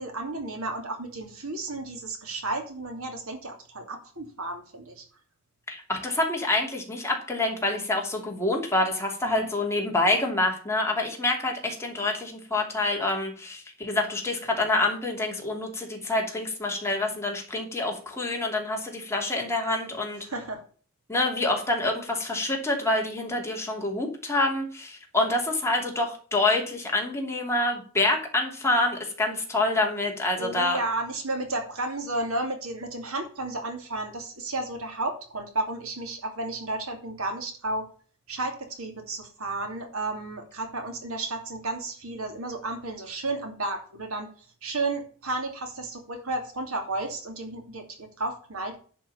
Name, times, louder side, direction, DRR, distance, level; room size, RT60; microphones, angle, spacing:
voice 1, 0.0-5.0 9.2-9.5 20.2-20.6 21.8-21.9 30.4-37.9 38.3-44.3 44.6-47.8 48.2-48.8, right 2 dB, 75° right, 4 dB, 2.7 m, -32 dB
voice 2, 5.7-20.2 21.1-30.8, left 2 dB, 15° left, 0 dB, 2.8 m, -27 dB
10.5 x 5.5 x 7.0 m, 0.42 s
head